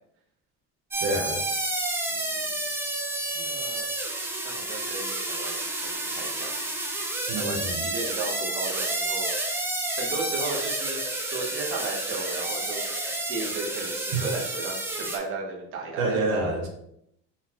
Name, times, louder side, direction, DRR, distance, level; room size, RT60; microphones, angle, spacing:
sound 1, 0.9-15.2, right 2 dB, 10° right, 0.3 m, -30 dB
voice 1, 1.0-1.4 7.3-7.8 14.1-14.2 16.0-16.7, right 2 dB, 75° right, 1 dB, 0.8 m, -27 dB
voice 2, 2.1-2.5 3.3-3.9 4.4-6.7 7.4-9.7 10.0-12.9 13.2-16.4, right 3 dB, 40° right, -1 dB, 0.8 m, -35 dB
3.9 x 2.4 x 2.7 m, 0.75 s
cardioid pair, 135°, 31 cm